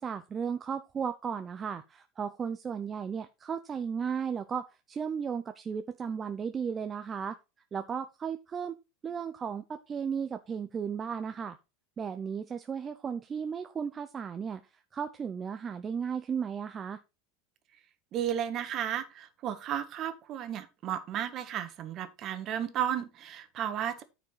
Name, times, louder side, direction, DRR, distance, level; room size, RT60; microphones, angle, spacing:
voice 1, 0.0-7.4 7.7-8.8 9.0-11.6 12.0-14.6 14.9-17.0, right 7 dB, 25° right, 0.7 m, -35 dB
voice 2, 18.1-24.0, right 10 dB, 40° right, 1.7 m, -33 dB
9.6 x 5.1 x 4.9 m
supercardioid pair, 125°, 0 cm